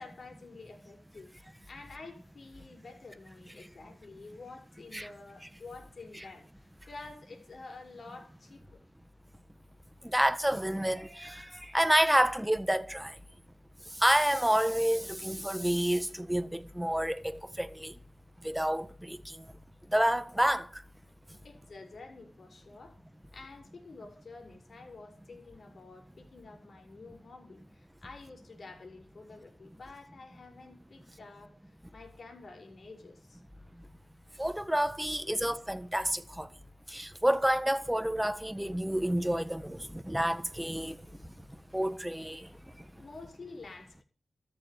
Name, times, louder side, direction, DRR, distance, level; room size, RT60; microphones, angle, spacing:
voice 1, 0.0-8.8 21.4-23.0 23.3-31.6 31.9-33.4 43.0-44.0, left 3 dB, 60° left, 5.5 m, -49 dB
voice 2, 10.1-13.1 14.0-17.9 18.4-19.4 19.9-20.8 34.4-36.5 36.9-41.0 41.7-42.5, right 1 dB, 5° right, 1.4 m, -29 dB
13.5 x 7.8 x 9.3 m
cardioid pair, 70°, 0 cm